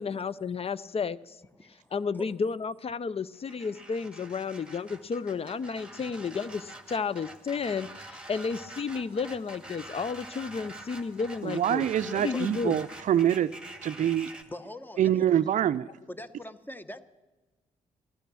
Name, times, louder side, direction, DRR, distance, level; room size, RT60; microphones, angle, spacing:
voice 1, 0.0-1.4 1.7-12.8, left 5 dB, 40° left, 18 dB, 0.6 m, -32 dB
voice 2, 1.6-1.9 14.5-15.3 16.1-17.0, left 1 dB, 10° left, 12 dB, 1.0 m, -43 dB
sound 1, 3.4-14.4, right 1 dB, 5° right, 1.8 m, -46 dB
voice 3, 11.4-13.5 13.8-14.3 15.0-15.9, right 10 dB, 55° right, 12 dB, 0.5 m, -25 dB
15.0 x 12.0 x 6.2 m, 1.2 s
hypercardioid pair, 45°, 16 cm